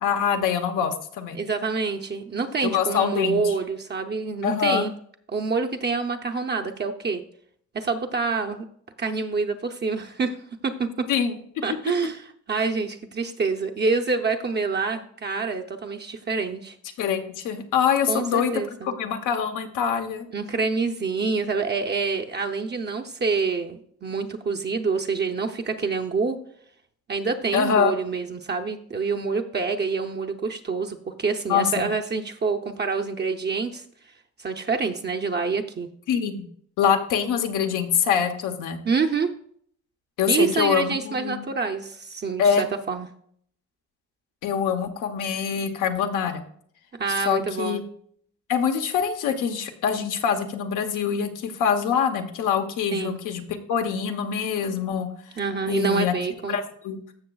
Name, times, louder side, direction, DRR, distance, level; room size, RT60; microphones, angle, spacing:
voice 1, 0.0-1.4 2.6-3.5 4.4-4.8 11.1-11.6 17.0-20.3 27.5-27.9 31.5-31.9 36.1-36.3 36.8-38.8 40.2-41.5 42.4-42.6 44.4-46.4 47.1-47.8 48.5-53.4 53.7-55.1 55.7-56.1 56.5-57.0, left 7 dB, 85° left, 5 dB, 1.1 m, -24 dB
voice 2, 1.3-4.9 5.3-7.2 7.7-8.6 9.0-10.4 10.6-11.1 11.6-16.8 18.1-18.9 20.3-26.4 27.1-33.8 34.4-35.9 38.8-39.3 40.3-43.1 47.0-47.8 52.9-53.2 55.4-56.6, right 4 dB, 35° right, 4 dB, 0.7 m, -27 dB
14.5 x 5.9 x 2.3 m, 0.63 s
cardioid pair, 90°, 30 cm